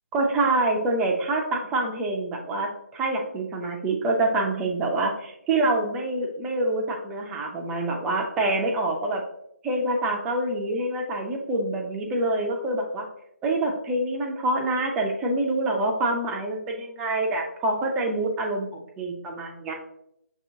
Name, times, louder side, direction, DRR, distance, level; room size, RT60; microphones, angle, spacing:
voice 1, 0.1-9.2 9.6-13.1 13.4-19.7, right 2 dB, 5° right, 1 dB, 0.3 m, -26 dB
6.4 x 2.8 x 2.6 m, 0.78 s
figure-of-eight pair, 150°, 9 cm